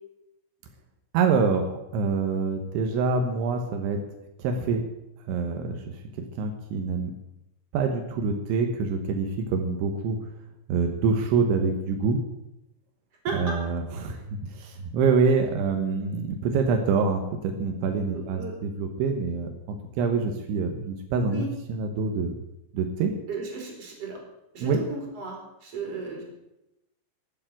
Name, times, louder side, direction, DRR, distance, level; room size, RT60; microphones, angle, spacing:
voice 1, 1.1-4.0 4.4-4.8 5.3-7.1 7.7-10.2 10.7-12.2 13.3-22.4 22.7-23.1 24.6-24.8, right 4 dB, 80° right, 5 dB, 3.6 m, -26 dB
voice 2, 13.2-13.6 18.1-18.5 21.3-21.5 23.3-24.2 24.5-26.2, right 3 dB, 35° right, 0 dB, 4.5 m, -34 dB
13.0 x 8.5 x 9.1 m, 0.91 s
omnidirectional pair, 5.3 m